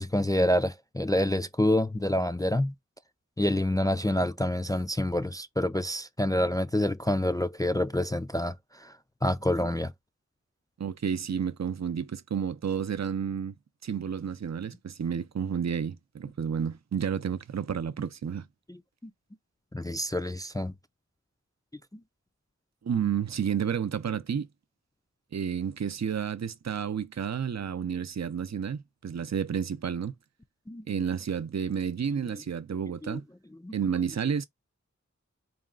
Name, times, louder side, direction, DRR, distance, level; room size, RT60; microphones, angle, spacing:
voice 1, 0.0-2.7 3.4-8.5 8.8-8.9 9.2-9.9 18.7-18.8 19.0-19.1 19.7-20.7 30.7-30.8 33.0-33.2 33.6-33.8, left 1 dB, 10° left, 0.3 m, -27 dB
voice 2, 10.8-13.5 13.8-18.4 22.8-24.5 25.3-30.1 30.9-33.2 33.7-34.4, right 7 dB, 65° right, 0.5 m, -31 dB
4.1 x 2.3 x 3.7 m
wide cardioid pair, 40°, 29 cm